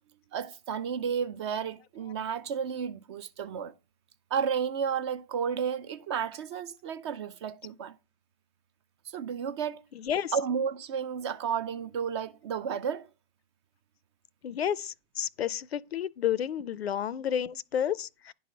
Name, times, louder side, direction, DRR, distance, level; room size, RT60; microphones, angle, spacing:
voice 1, 0.3-3.7 4.3-8.0 9.0-9.8 10.3-13.1, right 7 dB, 30° right, 0.4 m, -32 dB
voice 2, 9.9-10.3 14.4-18.3, left 9 dB, 85° left, 0.6 m, -31 dB
10.0 x 4.1 x 6.0 m
hypercardioid pair, 125°, 30 cm